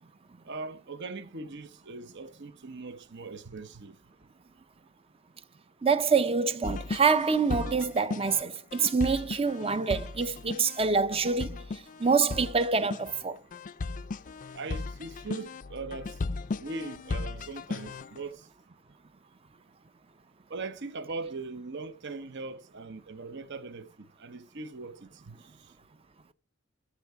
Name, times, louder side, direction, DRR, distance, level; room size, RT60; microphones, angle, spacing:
voice 1, 0.5-3.9 14.5-16.2 16.6-18.5 20.5-25.4, right 3 dB, 55° right, 1.0 m, -40 dB
voice 2, 5.8-11.6 12.0-13.4, right 5 dB, 30° right, 0.6 m, -26 dB
sound 1, 6.6-18.2, left 3 dB, 40° left, 0.4 m, -37 dB
14.0 x 4.6 x 4.7 m
head